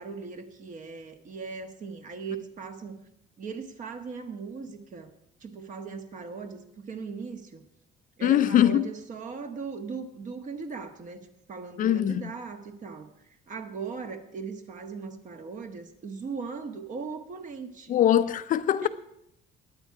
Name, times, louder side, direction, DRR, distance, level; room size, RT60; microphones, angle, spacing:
voice 1, 0.0-3.0 3.4-5.1 5.4-7.6 8.2-13.1 13.5-18.0 18.8-18.9, right 5 dB, 50° right, 1.5 m, -38 dB
voice 2, 8.2-8.9 11.8-12.3 17.9-18.9, left 11 dB, 50° left, 0.5 m, -22 dB
21.0 x 8.5 x 4.8 m
cardioid pair, 110°, 17 cm